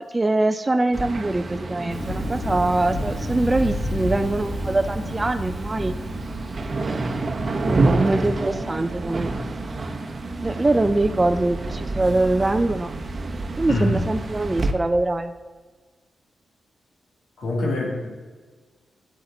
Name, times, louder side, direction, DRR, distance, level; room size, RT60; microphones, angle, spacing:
voice 1, 0.0-6.0 6.9-7.0 7.6-9.4 10.4-12.9 13.6-15.3, right 2 dB, 25° right, 8 dB, 0.5 m, -23 dB
sound 1, 0.9-14.7, right 2 dB, 40° right, 0.9 m, -28 dB
Thunder, 1.9-7.8, left 1 dB, 55° left, 1.3 m, -32 dB
voice 2, 13.7-14.0 17.4-18.1, left 1 dB, 80° left, -2 dB, 2.4 m, -24 dB
9.2 x 8.0 x 4.0 m, 1.4 s
cardioid pair, 85°, 0 cm